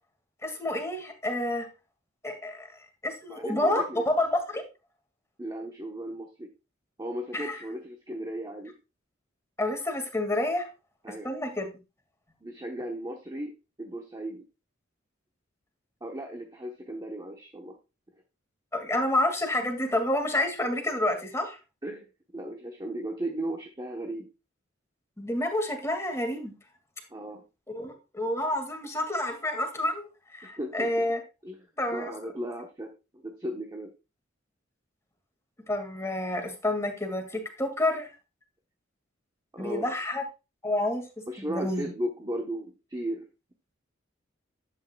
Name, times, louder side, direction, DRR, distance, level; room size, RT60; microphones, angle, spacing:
voice 1, 0.4-1.7 2.2-2.7 3.0-4.6 7.3-7.6 9.6-10.7 11.2-11.7 18.7-21.6 25.2-26.5 27.7-31.2 31.8-32.1 35.7-38.1 39.6-40.2 40.6-41.0 41.4-41.9, left 1 dB, 15° left, 4 dB, 2.1 m, -29 dB
voice 2, 3.3-4.0 5.4-6.5 7.0-8.7 11.0-11.3 12.4-13.5 13.8-14.4 16.0-17.8 21.8-22.1 22.3-24.3 27.1-27.4 30.4-31.1 31.4-31.6 31.9-33.9 39.5-39.9 41.3-43.3, right 1 dB, 20° right, 2 dB, 1.1 m, -36 dB
11.0 x 8.5 x 2.3 m, 0.28 s
head